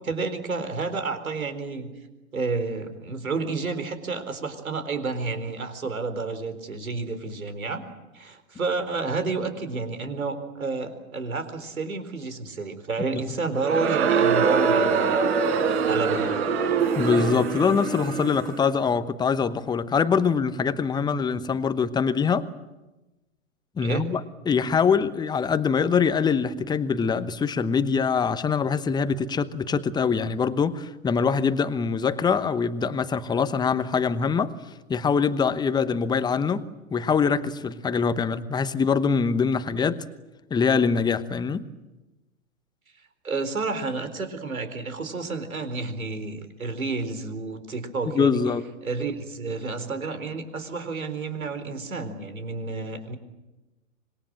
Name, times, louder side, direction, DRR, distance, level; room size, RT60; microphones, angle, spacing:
voice 1, 0.0-1.9 2.3-7.8 8.1-15.3 15.9-16.4 23.8-24.1 43.2-48.4 48.8-53.2, right 4 dB, 85° right, 4.2 m, -30 dB
Crowd, 13.5-18.6, right 5 dB, 55° right, 6.6 m, -23 dB
voice 2, 17.0-22.5 23.8-24.2 24.5-34.5 34.9-36.6 36.9-40.0 40.5-41.6 48.1-48.6, left 5 dB, 10° left, 1.0 m, -23 dB
26.0 x 22.0 x 8.9 m
hypercardioid pair, 115°, 41 cm